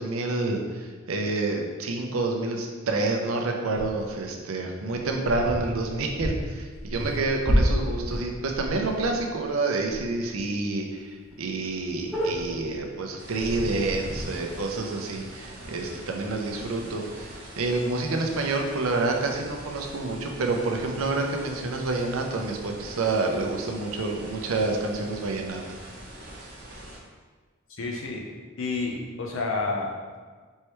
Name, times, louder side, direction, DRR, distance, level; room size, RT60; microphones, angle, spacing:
voice 1, 0.0-25.6, right 3 dB, 85° right, 2 dB, 0.6 m, -28 dB
sound 1, 3.7-4.2 4.9-9.4 9.8-10.1 10.3-10.4 10.9-11.0 11.2-11.3 11.6-12.8 13.4-14.2, equal, 5° left, 0.9 m, -29 dB
sound 2, 13.2-27.0, right 1 dB, 50° right, 0.8 m, -43 dB
voice 2, 27.7-28.2 28.6-30.2, left 3 dB, 70° left, 0 dB, 0.7 m, -30 dB
4.5 x 3.2 x 3.0 m, 1.5 s
head